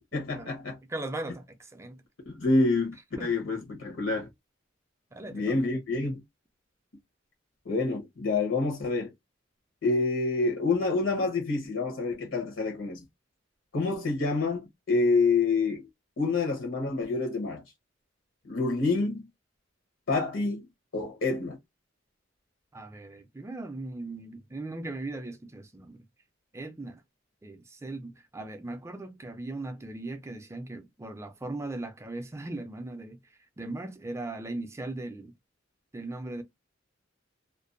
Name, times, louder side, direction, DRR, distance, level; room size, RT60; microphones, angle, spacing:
voice 1, 0.1-0.8 2.3-2.9 3.2-4.3 5.3-6.2 7.6-9.1 9.8-13.0 13.7-15.9 16.2-17.6 18.4-19.2 20.1-20.6 20.9-21.6, left 3 dB, 80° left, 0.9 m, -27 dB
voice 2, 0.9-2.0 3.2-3.3 5.1-5.7 22.7-26.1 26.5-27.0 27.4-33.2 33.6-35.3 35.9-36.4, right 2 dB, 15° right, 0.4 m, -38 dB
2.5 x 2.2 x 2.4 m
head